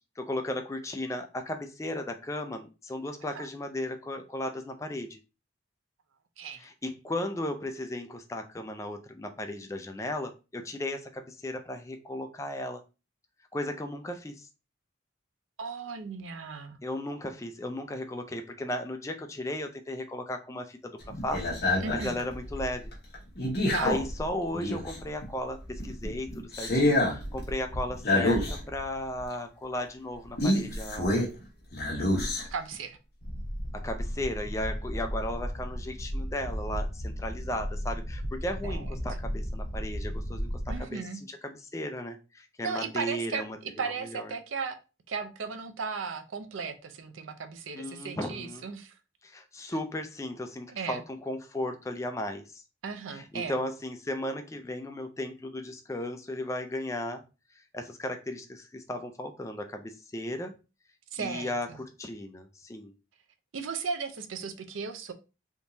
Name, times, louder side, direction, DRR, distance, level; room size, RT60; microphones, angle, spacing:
voice 1, 0.2-5.2 6.6-12.8 13.5-14.5 16.8-20.9 21.2-22.9 23.8-31.3 33.7-41.0 41.3-44.3 47.8-48.7 49.2-52.6 53.1-57.2 57.7-60.5 61.2-62.9, left 1 dB, 15° left, 6 dB, 0.3 m, -35 dB
voice 2, 15.6-16.8 21.8-22.2 23.7-23.9 32.5-33.0 38.6-38.9 40.7-41.2 42.6-44.8 45.1-49.0 50.7-51.0 52.8-53.6 61.1-61.8 63.5-65.1, right 5 dB, 90° right, 8 dB, 0.5 m, -36 dB
sound 1, 21.0-25.2 25.6-28.8 29.2-29.3 30.4-31.4 31.7-32.7 33.2-40.8, left 1 dB, 55° left, 1.1 m, -30 dB
3.6 x 2.9 x 2.6 m, 0.31 s
head